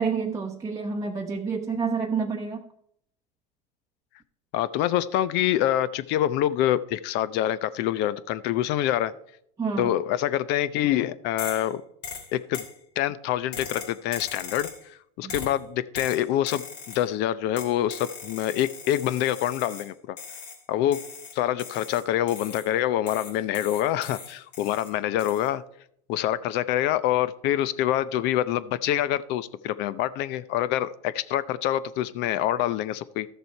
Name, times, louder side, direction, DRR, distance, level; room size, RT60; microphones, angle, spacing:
voice 1, 0.0-2.6 9.6-10.0 15.2-15.4, right 5 dB, 15° right, 0.9 m, -28 dB
voice 2, 4.5-9.1 9.8-11.8 12.3-12.6 13.0-14.7 15.2-20.2 20.7-21.0 21.3-25.6 26.1-33.3, left 12 dB, 60° left, 0.7 m, -26 dB
sound 1, 11.4-11.7 12.0-12.8 13.5-14.8 15.3-15.6 15.9-17.1 17.6-19.9 20.2-20.6 20.9-22.7 23.1-24.9 25.2-25.5, left 5 dB, 85° left, 2.9 m, -40 dB
13.0 x 6.8 x 4.5 m
supercardioid pair, 100°, 20 cm